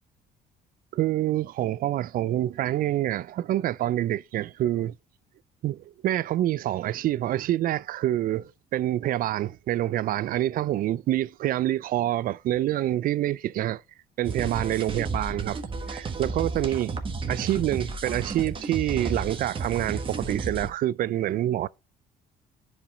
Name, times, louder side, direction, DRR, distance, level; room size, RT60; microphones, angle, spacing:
voice 1, 0.9-4.9 5.6-13.8 14.2-15.6 15.9-17.0 17.3-21.7, right 13 dB, 55° right, 0.4 m, -27 dB
sound 1, 14.2-20.7, right 4 dB, 30° right, 1.5 m, -32 dB
10.0 x 5.1 x 3.9 m
cardioid pair, 110°, 17 cm